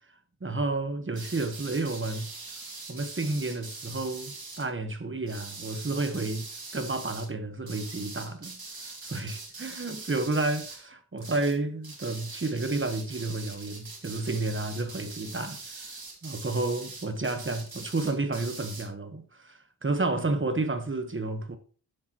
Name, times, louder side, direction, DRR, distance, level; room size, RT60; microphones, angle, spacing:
voice 1, 0.4-2.3 2.9-6.5 6.7-15.9 16.2-21.6, right 2 dB, 30° right, 1.2 m, -31 dB
sound 1, 1.1-4.7 5.3-7.3 7.7-10.9 11.2-11.6 11.8-18.9, right 3 dB, 60° right, 2.2 m, -43 dB
12.5 x 6.7 x 3.0 m
wide cardioid pair, 85°, 40 cm